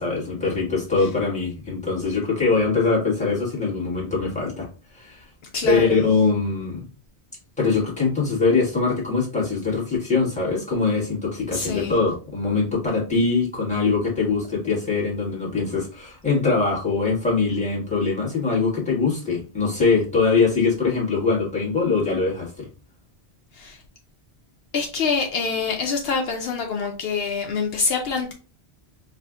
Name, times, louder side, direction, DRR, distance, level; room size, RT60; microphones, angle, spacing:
voice 1, 0.0-4.7 4.9-5.2 5.6-6.8 7.6-22.7, left 4 dB, 5° left, 1.4 m, -22 dB
voice 2, 5.5-6.0 11.5-11.9 23.6-23.8 24.7-28.3, left 5 dB, 70° left, 0.8 m, -25 dB
4.8 x 2.5 x 2.3 m
omnidirectional pair, 1.1 m